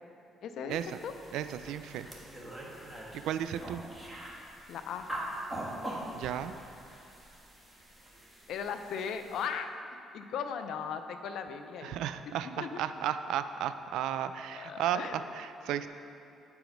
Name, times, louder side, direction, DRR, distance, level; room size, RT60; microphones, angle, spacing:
voice 1, 0.4-1.1 4.7-5.1 8.5-12.0 12.6-12.8 14.5-15.1, left 7 dB, 75° left, 8 dB, 0.5 m, -37 dB
sound 1, 0.7-9.5, right 1 dB, 5° right, 1.4 m, -43 dB
voice 2, 1.3-2.1 3.1-3.8 6.1-6.5 11.8-15.9, right 10 dB, 80° right, 10 dB, 0.3 m, -34 dB
9.3 x 4.8 x 5.1 m, 2.7 s
cardioid pair, 90°, 0 cm